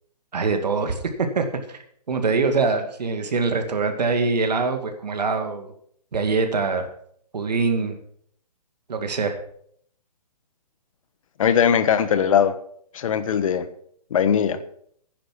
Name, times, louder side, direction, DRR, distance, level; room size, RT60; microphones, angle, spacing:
voice 1, 0.3-1.8 2.1-5.7 6.1-6.9 7.3-8.0 8.9-9.3, right 4 dB, 75° right, 6 dB, 2.2 m, -23 dB
voice 2, 11.4-12.5 12.9-13.7 14.1-14.6, left 8 dB, 55° left, 13 dB, 1.3 m, -20 dB
11.0 x 10.0 x 5.9 m, 0.65 s
hypercardioid pair, 150°, 21 cm